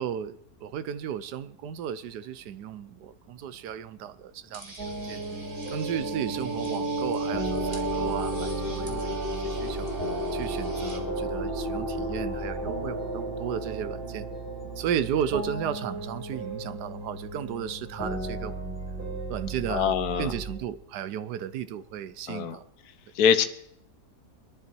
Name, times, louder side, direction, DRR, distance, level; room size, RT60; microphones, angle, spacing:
voice 1, 0.0-5.2 5.7-9.9 10.3-14.3 14.8-18.6 19.3-22.7, right 9 dB, 75° right, 1.3 m, -34 dB
sound 1, 4.5-11.0, right 2 dB, 30° right, 1.7 m, -47 dB
sound 2, 4.8-20.6, right 2 dB, 60° right, 5.4 m, -36 dB
sound 3, 5.1-15.3, right 1 dB, 30° left, 2.3 m, -33 dB
voice 2, 19.7-20.3 22.3-22.6 23.2-23.4, left 7 dB, 65° left, 1.4 m, -23 dB
21.5 x 11.0 x 4.6 m
omnidirectional pair, 1.8 m